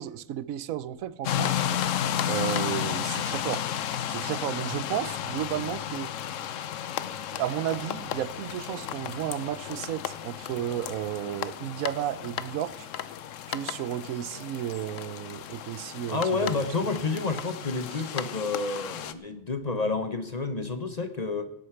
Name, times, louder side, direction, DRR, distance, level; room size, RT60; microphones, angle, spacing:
voice 1, 0.0-1.6 2.3-3.7 4.1-6.1 7.3-12.9 13.5-16.7 17.9-18.1, right 11 dB, 85° right, 1.1 m, -33 dB
sound 1, 1.2-19.1, left 10 dB, 70° left, 1.0 m, -33 dB
voice 2, 16.1-21.5, left 3 dB, 35° left, 0.8 m, -29 dB
17.0 x 8.1 x 5.7 m
omnidirectional pair, 1.4 m